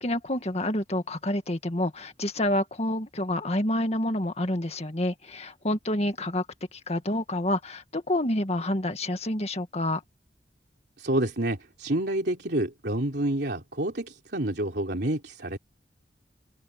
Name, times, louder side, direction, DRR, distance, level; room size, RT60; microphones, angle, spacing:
voice 1, 0.0-6.5 6.9-10.0, left 1 dB, 35° left, 1.9 m, -28 dB
voice 2, 11.0-15.6, right 1 dB, 60° right, 3.5 m, -28 dB
open air
head